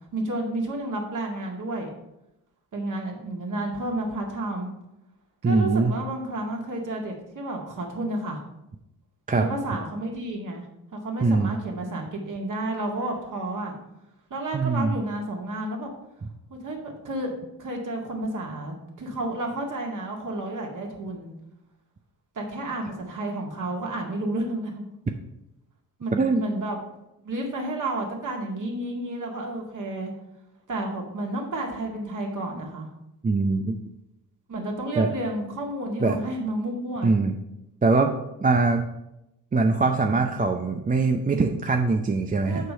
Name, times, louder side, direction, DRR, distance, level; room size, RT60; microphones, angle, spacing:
voice 1, 0.1-1.9 2.7-4.7 5.4-8.4 9.3-10.7 10.9-13.8 14.3-15.9 16.5-17.3 17.6-21.3 22.4-24.8 26.0-26.8 27.2-30.1 30.7-32.9 34.5-37.1 42.5-42.7, right 1 dB, 45° right, 1 dB, 2.1 m, -31 dB
voice 2, 5.4-5.9 9.3-9.5 11.2-11.5 14.5-14.9 26.2-26.4 33.2-33.7 35.0-35.1 36.0-36.2 37.0-37.3 37.8-38.1 38.4-38.9 39.5-42.7, right 3 dB, 20° right, 4 dB, 0.6 m, -22 dB
6.7 x 4.7 x 5.5 m, 0.89 s
hypercardioid pair, 40°, 45 cm